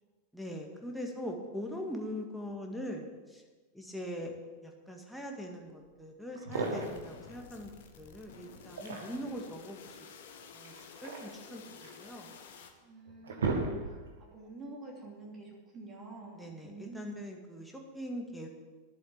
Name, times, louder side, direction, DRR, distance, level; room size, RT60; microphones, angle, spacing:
voice 1, 0.3-3.4 3.7-4.3 4.6-10.0 10.5-10.7 11.0-12.4 16.3-18.5, equal, ahead, 1 dB, 1.9 m, -42 dB
sound 1, 5.9-6.0 6.3-7.1 8.5-9.4 10.6-12.0 12.6-12.7 13.1-14.2, right 3 dB, 65° right, 2.0 m, -35 dB
sound 2, 6.5-12.7, left 6 dB, 55° left, 1.3 m, -52 dB
voice 2, 12.8-17.2, right 2 dB, 25° right, -2 dB, 3.1 m, -48 dB
11.0 x 7.8 x 7.6 m, 1.3 s
figure-of-eight pair, 90°, 0 cm